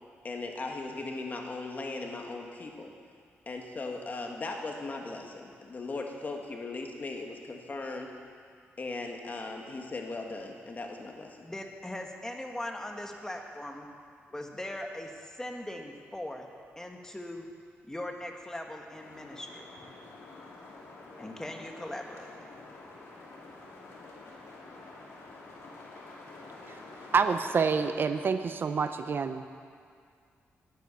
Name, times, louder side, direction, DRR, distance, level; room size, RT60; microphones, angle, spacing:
voice 1, 0.2-2.9 3.4-8.1 8.8-11.4, left 3 dB, 40° left, 2 dB, 1.7 m, -38 dB
voice 2, 11.4-13.9 14.3-16.5 16.8-17.5 17.9-19.6 21.2-22.5, left 1 dB, 10° left, 3 dB, 1.5 m, -40 dB
sound 1, 18.9-27.9, left 3 dB, 80° left, 2.8 m, -48 dB
voice 3, 27.1-29.5, right 5 dB, 50° right, 9 dB, 0.6 m, -27 dB
11.5 x 10.0 x 7.0 m, 2.2 s
cardioid pair, 95°, 5 cm